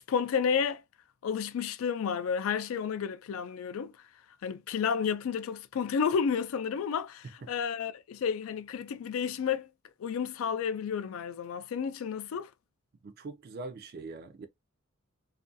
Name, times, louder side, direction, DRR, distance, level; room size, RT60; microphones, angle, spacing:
voice 1, 0.1-0.8 1.2-3.9 4.4-9.7 10.0-12.5, left 7 dB, 75° left, 0.3 m, -31 dB
voice 2, 13.0-14.5, right 3 dB, 45° right, 0.4 m, -42 dB
2.4 x 2.2 x 2.5 m
head